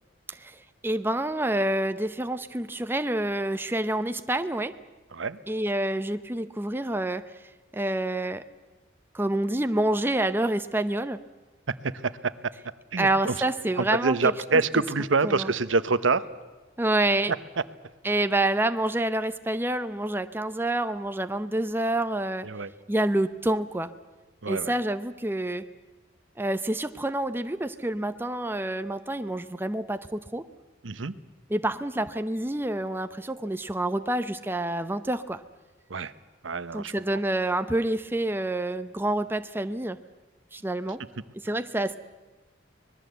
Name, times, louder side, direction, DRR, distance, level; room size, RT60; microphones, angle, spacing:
voice 1, 0.3-4.7 5.5-7.2 7.7-8.4 9.1-11.2 13.0-14.2 14.5-14.6 15.2-15.5 16.8-17.3 18.0-22.5 22.9-23.9 24.5-25.6 26.4-30.4 31.5-35.4 36.7-40.0 40.5-41.0 41.3-41.9, right 1 dB, 10° right, 9 dB, 0.7 m, -27 dB
voice 2, 11.7-12.3 12.9-13.4 13.8-16.3 22.4-22.7 24.4-24.7 30.8-31.1 35.9-36.1 36.4-36.9, right 4 dB, 80° right, 14 dB, 0.9 m, -26 dB
25.0 x 19.5 x 8.1 m, 1.2 s
head